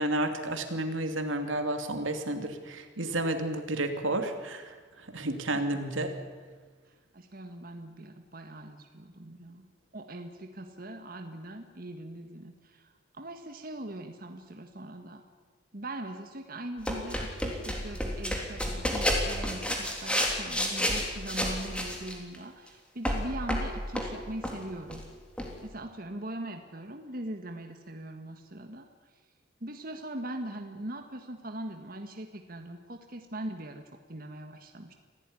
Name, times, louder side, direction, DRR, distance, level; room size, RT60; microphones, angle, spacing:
voice 1, 0.0-6.1, right 1 dB, 85° right, 6 dB, 2.8 m, -31 dB
voice 2, 6.9-9.7 9.9-15.2 15.7-25.1 25.6-28.9 29.6-34.9, right 1 dB, 45° right, 5 dB, 1.7 m, -41 dB
sound 1, 16.9-22.4 23.1-24.2 24.4-24.6 24.9-25.1 25.4-25.5, equal, 5° left, 3.4 m, -30 dB
25.5 x 16.5 x 9.9 m, 1.4 s
head